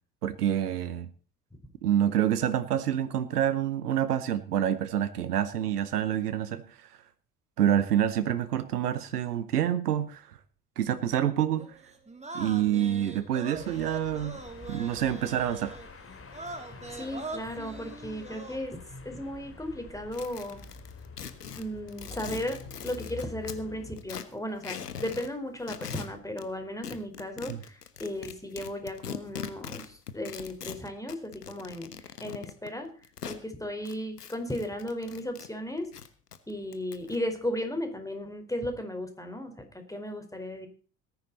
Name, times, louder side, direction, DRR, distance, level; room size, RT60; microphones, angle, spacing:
voice 1, 0.2-1.1 1.8-7.0 7.6-10.4 10.8-11.8 12.3-14.4 14.7-15.8 27.5-27.6, right 10 dB, 80° right, 14 dB, 1.0 m, -27 dB
sound 1, 11.6-15.9 16.3-18.6, right 3 dB, 15° right, 3.6 m, -42 dB
sound 2, 13.5-23.9, left 4 dB, 30° left, 3.3 m, -47 dB
voice 2, 17.0-18.8 19.0-20.6 21.6-32.0 32.2-32.9 33.3-35.9 36.5-40.7, left 1 dB, 5° left, 6 dB, 4.7 m, -35 dB
sound 3, 20.1-23.6 24.0-25.3 25.6-26.5 26.8-33.4 33.8-35.5 35.8-37.2, left 8 dB, 80° left, 1.3 m, -41 dB
19.0 x 11.0 x 4.2 m, 0.39 s
figure-of-eight pair, 50°, 46 cm